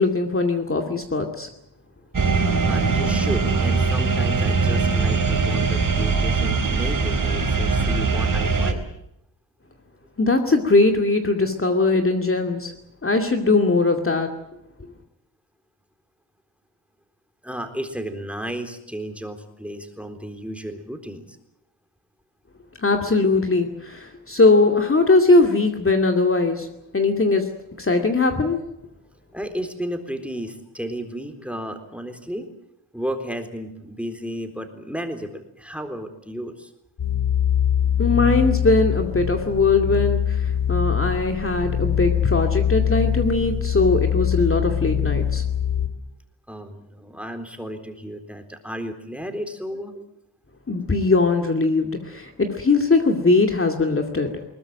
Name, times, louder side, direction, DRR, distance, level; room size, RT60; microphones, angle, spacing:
voice 1, 0.0-1.5 10.2-12.7 13.0-14.3 22.8-26.7 26.9-27.5 27.8-28.6 38.0-45.4 50.7-54.3, left 3 dB, 30° left, 4 dB, 2.5 m, -20 dB
sound 1, 2.1-8.7, right 4 dB, 45° right, 4.2 m, -21 dB
voice 2, 2.7-8.8 17.4-21.4 29.3-32.5 32.9-36.7 46.5-50.0, equal, 5° right, 6 dB, 3.9 m, -33 dB
sound 2, 37.0-45.9, left 9 dB, 65° left, 3.1 m, -23 dB
21.5 x 20.0 x 9.2 m, 0.80 s
cardioid pair, 85°, 46 cm